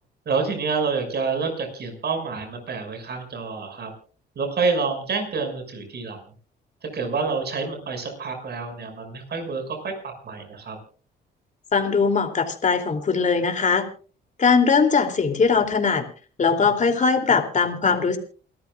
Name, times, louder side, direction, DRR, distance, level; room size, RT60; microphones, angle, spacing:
voice 1, 0.3-3.9 4.4-6.2 6.8-9.9 10.2-10.8, right 4 dB, 55° right, 5 dB, 6.3 m, -28 dB
voice 2, 11.7-13.8 14.4-16.0 16.4-18.2, left 5 dB, 40° left, 5 dB, 3.0 m, -20 dB
29.0 x 13.5 x 2.5 m, 0.38 s
cardioid pair, 90°, 20 cm